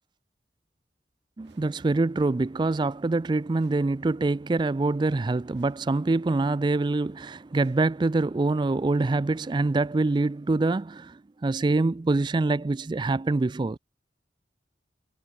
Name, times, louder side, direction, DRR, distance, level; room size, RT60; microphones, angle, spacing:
voice 1, 1.4-13.8, right 3 dB, 25° right, 0.3 m, -25 dB
sound 1, 1.4-2.3 3.5-4.5 5.5-6.3 7.5-8.5, right 4 dB, 85° right, 6.9 m, -69 dB
head